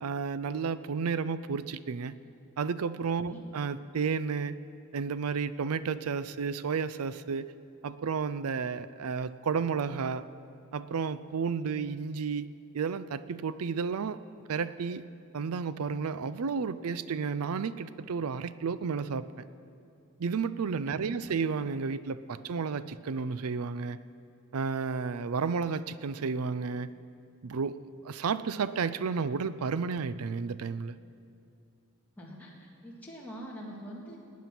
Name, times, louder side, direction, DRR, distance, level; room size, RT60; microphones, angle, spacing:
voice 1, 0.0-2.1 2.6-4.6 4.9-7.5 7.8-10.2 10.7-12.5 12.7-14.2 14.5-15.0 15.3-19.3 20.2-24.0 24.5-26.9 27.4-27.8 28.0-31.0, right 5 dB, 80° right, 0.5 m, -32 dB
voice 2, 20.9-21.2 32.2-34.2, equal, 10° left, 1.8 m, -44 dB
19.0 x 9.4 x 5.9 m
head